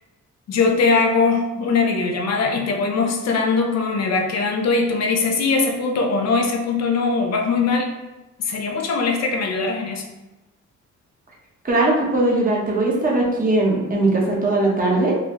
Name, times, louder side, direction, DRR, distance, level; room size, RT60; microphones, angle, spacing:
voice 1, 0.5-7.9 8.4-10.1, left 4 dB, 60° left, 2 dB, 0.7 m, -21 dB
voice 2, 11.6-15.1, right 2 dB, 30° right, -3 dB, 1.1 m, -19 dB
3.9 x 2.3 x 3.1 m, 1.0 s
cardioid pair, 90°, 30 cm